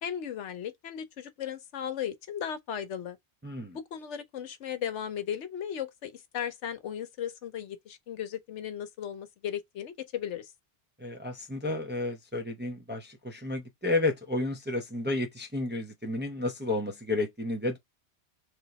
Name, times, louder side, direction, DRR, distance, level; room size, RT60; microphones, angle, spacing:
voice 1, 0.0-3.2 3.7-10.5, left 9 dB, 80° left, 1.1 m, -36 dB
voice 2, 3.4-3.8 11.0-17.8, left 2 dB, 15° right, 0.4 m, -31 dB
3.4 x 2.9 x 4.0 m
omnidirectional pair, 1.2 m